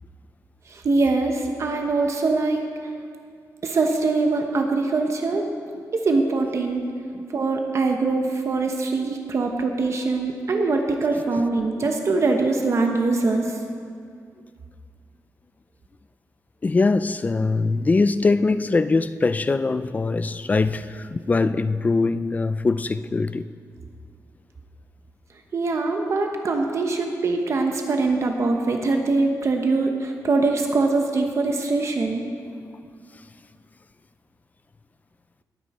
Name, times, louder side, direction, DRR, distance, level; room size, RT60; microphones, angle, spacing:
voice 1, 0.7-2.6 3.6-5.5 5.9-6.9 7.3-13.6 25.5-32.2, right 3 dB, 50° right, 1.0 m, -23 dB
voice 2, 16.6-23.4, left 3 dB, 25° left, 0.4 m, -22 dB
19.5 x 9.4 x 4.3 m
wide cardioid pair, 150°, 6 cm